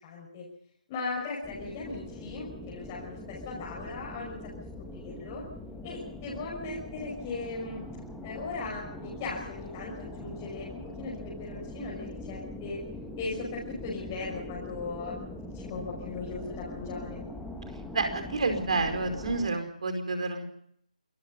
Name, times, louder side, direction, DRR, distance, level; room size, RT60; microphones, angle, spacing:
voice 1, 0.0-0.4 0.9-4.3 4.9-5.4 5.8-7.8 8.2-12.8 13.2-17.2, left 3 dB, 20° left, -5 dB, 6.0 m, -38 dB
sound 1, 1.4-19.5, left 1 dB, ahead, 1.8 m, -42 dB
voice 2, 17.9-20.4, right 3 dB, 50° right, 7 dB, 4.8 m, -29 dB
27.5 x 21.0 x 5.5 m, 0.68 s
figure-of-eight pair, 150°, 4 cm